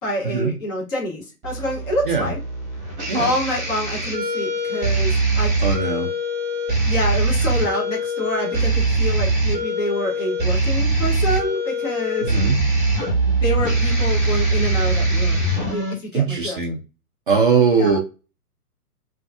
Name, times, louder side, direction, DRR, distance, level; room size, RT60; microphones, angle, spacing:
voice 1, 0.0-2.4 3.1-5.5 6.9-12.3 13.2-16.6 17.8-18.0, left 1 dB, 15° left, -3 dB, 0.6 m, -27 dB
sound 1, 1.4-15.9, right 2 dB, 15° right, 1.0 m, -22 dB
voice 2, 5.6-6.1 12.2-12.6 16.1-16.8 17.3-18.0, right 5 dB, 35° right, 2 dB, 0.5 m, -20 dB
3.5 x 2.6 x 2.3 m, 0.30 s
figure-of-eight pair, 125°, 46 cm